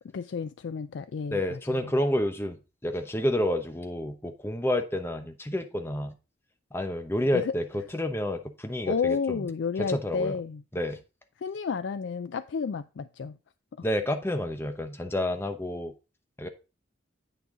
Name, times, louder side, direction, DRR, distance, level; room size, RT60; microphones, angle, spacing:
voice 1, 0.1-2.0 7.3-7.6 8.9-10.6 11.4-13.4, left 5 dB, 85° left, 0.4 m, -31 dB
voice 2, 1.3-2.6 2.8-6.1 6.7-9.4 9.8-10.4 10.7-11.0 13.8-15.9 16.4-16.5, left 1 dB, 15° left, 0.9 m, -29 dB
8.7 x 6.2 x 3.8 m
head